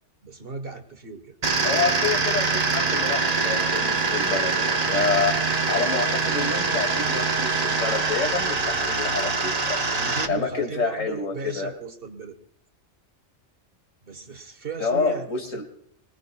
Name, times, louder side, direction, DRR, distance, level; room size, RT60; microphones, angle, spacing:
voice 1, 0.2-1.4 9.9-12.4 14.0-15.6, right 4 dB, 50° right, 7 dB, 1.3 m, -36 dB
sound 1, 1.4-10.3, right 4 dB, 35° right, 1.0 m, -24 dB
voice 2, 1.6-9.8 10.3-11.7 14.8-15.6, left 5 dB, 85° left, 3 dB, 2.7 m, -28 dB
24.5 x 20.0 x 2.3 m, 0.70 s
omnidirectional pair, 1.3 m